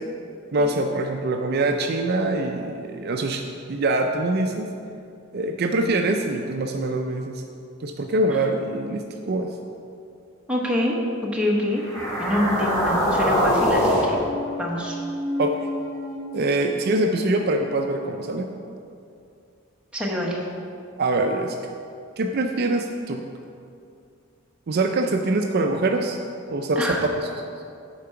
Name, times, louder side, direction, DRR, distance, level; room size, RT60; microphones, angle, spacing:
voice 1, 0.5-3.4 3.7-4.7 5.3-7.4 7.8-9.0 9.3-9.5 15.4-15.5 16.3-18.5 21.0-21.8 22.2-23.2 24.7-26.2 26.5-27.3, right 2 dB, 50° right, 4 dB, 0.4 m, -24 dB
voice 2, 10.5-11.0 11.3-11.8 12.2-14.2 14.6-15.0 19.9-20.4 26.8-27.0, left 1 dB, 5° right, -3 dB, 1.1 m, -25 dB
sound 1, 11.8-16.1, equal, 15° left, 1.8 m, -24 dB
8.6 x 4.7 x 5.8 m, 2.5 s
head